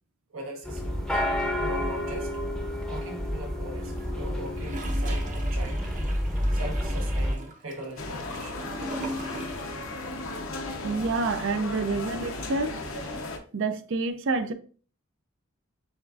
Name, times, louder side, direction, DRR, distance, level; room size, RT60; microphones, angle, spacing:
voice 1, 0.3-1.2 1.6-2.3 2.9-5.8 6.5-8.7 11.4-11.8, right 1 dB, 85° right, 1.1 m, -41 dB
sound 1, 0.6-7.4, equal, 5° left, 0.6 m, -29 dB
Gurgling / Toilet flush, 3.8-9.9 10.1-10.2, right 1 dB, 40° right, 0.8 m, -40 dB
sound 2, 8.0-13.4, left 2 dB, 85° left, 0.7 m, -35 dB
voice 2, 10.8-12.8 13.5-14.5, right 3 dB, 70° right, 0.5 m, -28 dB
7.0 x 2.5 x 2.4 m
head